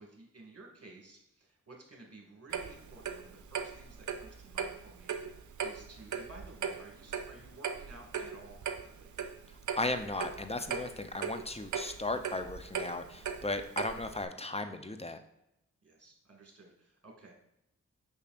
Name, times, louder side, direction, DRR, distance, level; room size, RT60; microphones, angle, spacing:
voice 1, 0.0-9.1 15.8-17.3, right 2 dB, 50° right, 0 dB, 2.0 m, -54 dB
Clock, 2.5-14.2, right 6 dB, 65° right, 0.6 m, -39 dB
voice 2, 9.8-15.2, left 2 dB, 20° left, 8 dB, 0.6 m, -36 dB
6.9 x 5.6 x 2.5 m, 0.86 s
cardioid pair, 45°, 31 cm